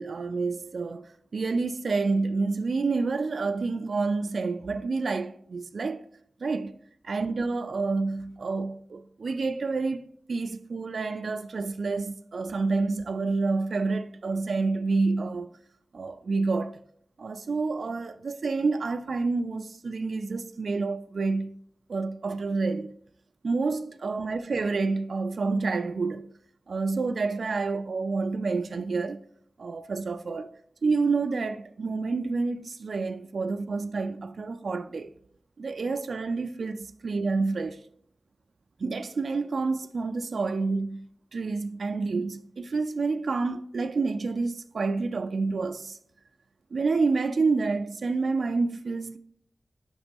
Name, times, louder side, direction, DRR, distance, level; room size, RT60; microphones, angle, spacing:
voice 1, 0.0-6.0 6.4-6.8 7.0-10.0 10.3-15.5 15.9-16.8 17.2-21.6 21.9-23.0 23.4-26.3 26.7-29.2 29.6-30.5 30.8-35.1 35.6-37.8 38.8-46.0 46.7-49.2, right 3 dB, 80° right, 0.3 m, -28 dB
5.1 x 4.0 x 5.2 m
wide cardioid pair, 80°, 0 cm